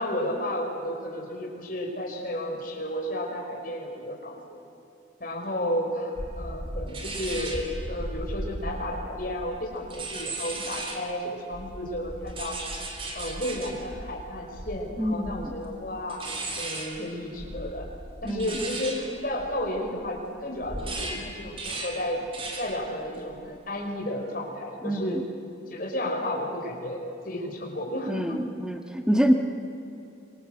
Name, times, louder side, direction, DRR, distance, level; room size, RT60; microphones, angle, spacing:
voice 1, 0.0-4.6 5.2-12.6 13.1-17.9 18.2-22.3 22.6-25.2 25.7-27.0 27.2-28.4, left 1 dB, 45° left, 0 dB, 5.0 m, -32 dB
sound 1, 6.2-11.2 11.5-20.2 20.5-22.9 23.2-23.6, right 2 dB, 30° right, 3.3 m, -36 dB
voice 2, 15.0-15.5 18.2-18.4 24.8-25.2 28.1-29.3, equal, 5° right, 4 dB, 1.4 m, -25 dB
25.5 x 25.5 x 7.8 m, 2.9 s
head